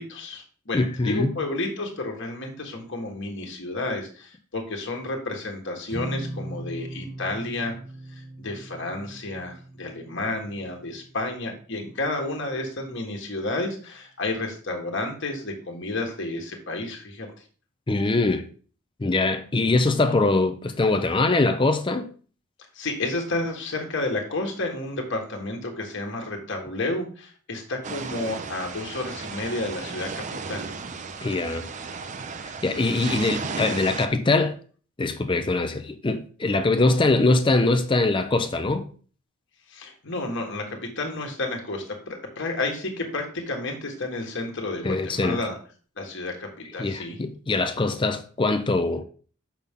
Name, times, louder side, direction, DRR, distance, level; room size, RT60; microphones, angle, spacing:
voice 1, 0.0-7.7 8.1-17.3 22.7-30.7 39.7-45.6 46.0-47.2, left 2 dB, 60° left, 1.5 m, -31 dB
voice 2, 0.7-1.3 17.9-18.5 19.0-22.1 31.2-31.7 32.6-34.6 35.0-38.9 44.8-45.4 46.8-49.0, left 2 dB, 25° left, 0.5 m, -23 dB
sound 1, 5.9-12.3, right 1 dB, 80° right, 1.9 m, -40 dB
sound 2, 27.8-34.1, right 4 dB, 35° right, 0.5 m, -34 dB
6.9 x 5.8 x 3.6 m
head